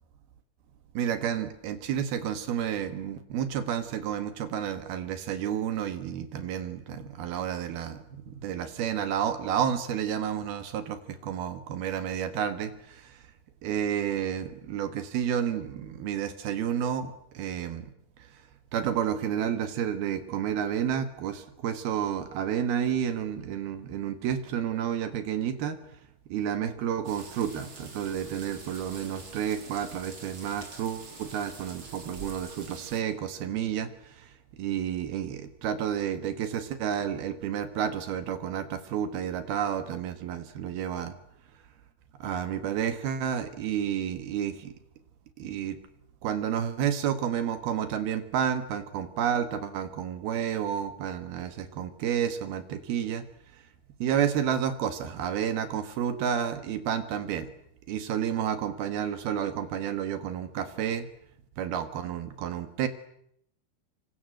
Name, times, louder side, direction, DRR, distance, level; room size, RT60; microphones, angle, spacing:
voice 1, 1.0-13.3 13.6-17.9 18.2-18.4 18.7-25.8 26.3-34.3 34.6-41.2 42.2-44.7 45.4-45.8 46.2-53.3 53.5-53.6 54.0-57.5 57.9-61.1 61.6-62.9, right 9 dB, 75° right, 10 dB, 3.5 m, -30 dB
sound 1, 27.0-33.0, right 3 dB, 35° right, 4.1 m, -46 dB
28.0 x 26.0 x 7.9 m, 0.72 s
omnidirectional pair, 4.5 m